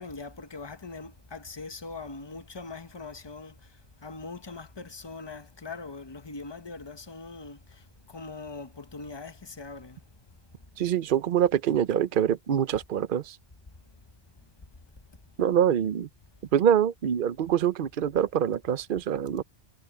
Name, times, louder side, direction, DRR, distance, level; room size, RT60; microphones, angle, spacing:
voice 1, 0.0-3.6 4.0-7.8 8.1-10.0, left 3 dB, 25° left, 1.0 m, -41 dB
voice 2, 10.8-13.4 15.4-16.1 16.5-19.4, right 9 dB, 55° right, 0.8 m, -25 dB
omnidirectional pair, 1.1 m